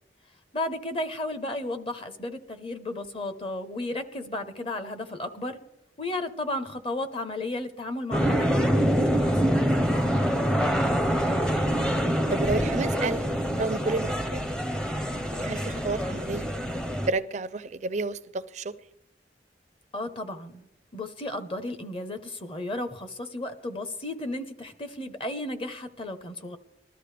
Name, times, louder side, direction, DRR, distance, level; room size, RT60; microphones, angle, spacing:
voice 1, 0.5-5.6 6.0-9.6 19.9-20.7 20.9-26.6, left 2 dB, 30° left, 9 dB, 1.0 m, -34 dB
sound 1, 8.1-17.1, equal, 5° left, 0.7 m, -25 dB
voice 2, 10.7-11.4 12.3-13.3 13.5-14.4 15.3-16.5 17.1-18.7, right 3 dB, 40° right, 13 dB, 0.5 m, -31 dB
20.5 x 13.0 x 3.3 m, 0.84 s
head